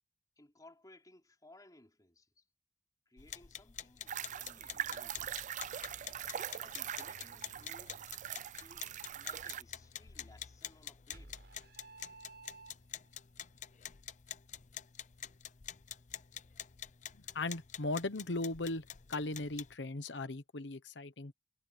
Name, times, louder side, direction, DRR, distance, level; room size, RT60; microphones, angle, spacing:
voice 1, 0.4-2.5 3.1-5.2 6.6-8.0 8.4-11.4 16.4-16.7, left 1 dB, 20° left, 3.5 m, -61 dB
sound 1, 3.2-19.7, left 10 dB, 45° left, 0.6 m, -48 dB
sound 2, 4.1-9.6, right 9 dB, 45° right, 0.4 m, -42 dB
sound 3, 11.1-13.2, right 3 dB, 65° right, 7.1 m, -54 dB
voice 2, 17.3-18.8 19.1-21.3, left 2 dB, 85° left, 1.1 m, -37 dB
head